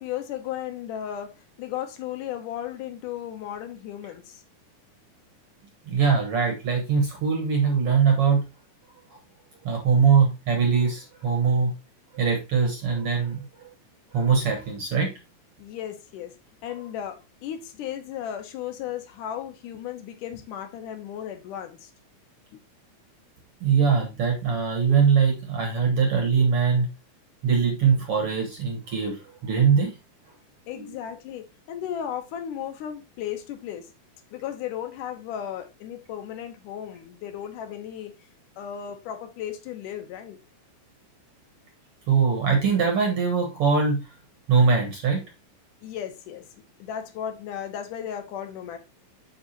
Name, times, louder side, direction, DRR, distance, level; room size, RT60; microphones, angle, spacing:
voice 1, 0.0-4.4 15.6-16.3 16.6-21.9 22.5-22.6 30.7-33.9 34.3-38.1 38.6-40.4 45.8-46.5 46.8-48.8, left 10 dB, 75° left, 2.2 m, -35 dB
voice 2, 5.9-8.4 9.6-11.7 12.1-13.7 14.1-15.1 23.6-26.9 27.4-29.9 42.1-44.0 44.5-45.2, right 6 dB, 55° right, 1.8 m, -22 dB
7.3 x 6.2 x 2.8 m
omnidirectional pair, 3.9 m